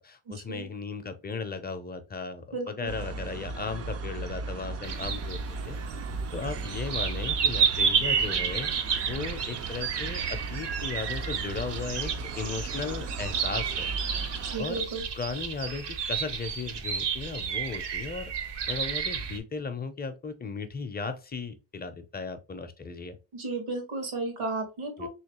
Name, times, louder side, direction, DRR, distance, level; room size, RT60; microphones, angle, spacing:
voice 1, 0.0-5.8 6.3-8.7 9.0-13.9 14.6-14.9 15.1-18.3 18.7-23.2 25.0-25.1, left 4 dB, 20° left, 0.5 m, -36 dB
voice 2, 2.5-2.9 14.4-15.0 23.3-25.1, right 3 dB, 85° right, 1.6 m, -33 dB
sound 1, 2.9-14.6, right 3 dB, 35° right, 0.4 m, -37 dB
sound 2, 4.8-19.4, right 6 dB, 60° right, 0.8 m, -31 dB
3.1 x 3.1 x 2.9 m
cardioid pair, 100°, 48 cm